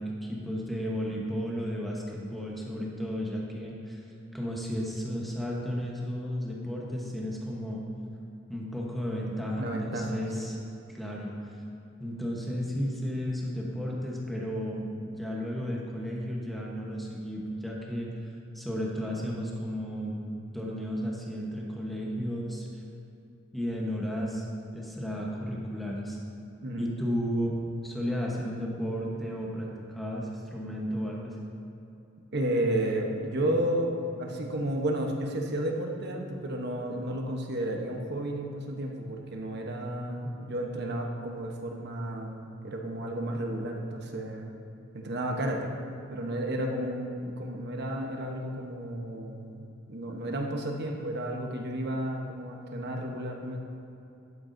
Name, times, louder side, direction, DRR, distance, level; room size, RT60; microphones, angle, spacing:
voice 1, 0.0-4.0 4.3-7.8 8.5-10.6 10.9-11.6 12.0-22.7 23.5-24.5 24.7-26.2 26.8-27.6 27.8-31.3, equal, ahead, -3 dB, 1.1 m, -33 dB
voice 2, 9.6-10.4 26.6-26.9 32.3-44.6 44.9-45.7 46.1-53.6, right 1 dB, 55° right, 1 dB, 1.1 m, -32 dB
11.5 x 9.5 x 2.7 m, 2.8 s
head